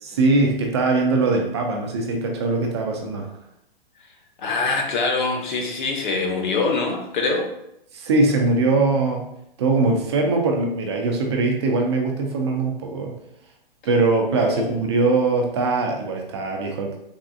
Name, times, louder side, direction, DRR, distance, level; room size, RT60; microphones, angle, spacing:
voice 1, 0.0-3.3 7.9-9.3 9.6-13.1 13.8-17.0, right 3 dB, 30° right, 1 dB, 0.4 m, -21 dB
voice 2, 4.4-7.5 14.5-14.7, left 3 dB, 55° left, 2 dB, 0.8 m, -24 dB
3.4 x 2.4 x 2.3 m, 0.79 s
hypercardioid pair, 145°, 30 cm